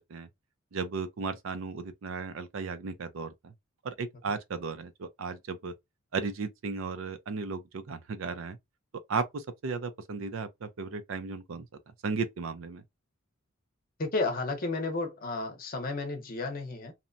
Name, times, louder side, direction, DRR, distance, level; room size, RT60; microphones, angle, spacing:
voice 1, 0.7-3.5 3.8-5.7 6.1-8.6 9.1-11.7 12.0-12.8, right 4 dB, 75° right, 0.4 m, -35 dB
voice 2, 14.0-16.9, left 3 dB, 45° left, 0.7 m, -32 dB
2.7 x 2.1 x 2.5 m
head